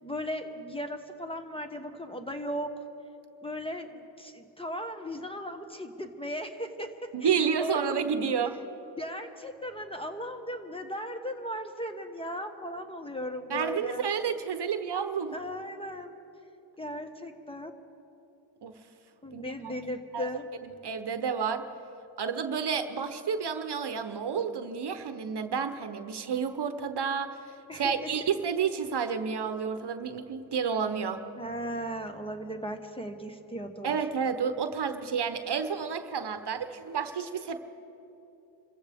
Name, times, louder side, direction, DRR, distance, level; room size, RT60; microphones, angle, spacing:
voice 1, 0.0-2.7 3.4-7.8 8.1-8.3 9.0-14.1 15.3-16.2 16.8-17.7 19.2-20.4 27.7-28.3 31.4-33.9, equal, 10° left, 5 dB, 1.3 m, -37 dB
voice 2, 7.1-8.5 13.5-15.4 18.6-18.7 19.3-19.7 20.1-20.3 20.6-21.7 22.2-31.2 33.8-37.6, right 6 dB, 60° right, 8 dB, 1.0 m, -30 dB
27.0 x 15.0 x 3.6 m, 3.0 s
cardioid pair, 60°, 46 cm